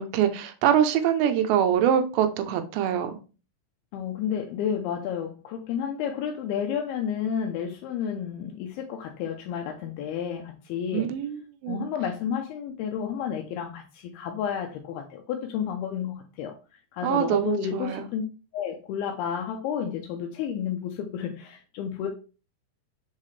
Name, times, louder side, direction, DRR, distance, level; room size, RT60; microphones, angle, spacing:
voice 1, 0.0-3.2 10.9-11.9 17.0-18.1, right 9 dB, 80° right, 8 dB, 2.8 m, -24 dB
voice 2, 3.9-11.1 11.7-16.5 16.9-18.2 18.5-22.1, left 8 dB, 80° left, 3 dB, 2.3 m, -31 dB
7.4 x 4.0 x 3.2 m, 0.34 s
omnidirectional pair, 5.1 m